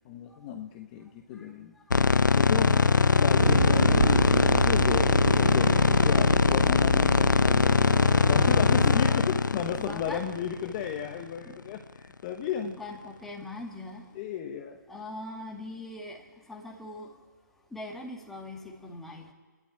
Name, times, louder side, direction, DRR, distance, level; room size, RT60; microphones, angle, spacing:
voice 1, 0.0-1.7 2.3-2.8 3.2-7.8 8.3-12.8 14.1-14.8, left 8 dB, 20° left, 4 dB, 1.1 m, -34 dB
voice 2, 1.3-2.4 2.7-3.4 7.5-8.1 9.0-9.2 9.8-10.3 10.6-10.7 11.1-11.6 12.8-14.1 14.9-17.2 17.7-19.3, left 2 dB, 5° left, 0 dB, 1.9 m, -42 dB
sound 1, 1.9-11.1, left 4 dB, 90° left, 0.7 m, -22 dB
sound 2, 3.4-8.9, right 5 dB, 55° right, 1.8 m, -30 dB
27.5 x 12.0 x 8.9 m, 1.4 s
hypercardioid pair, 160°, 10 cm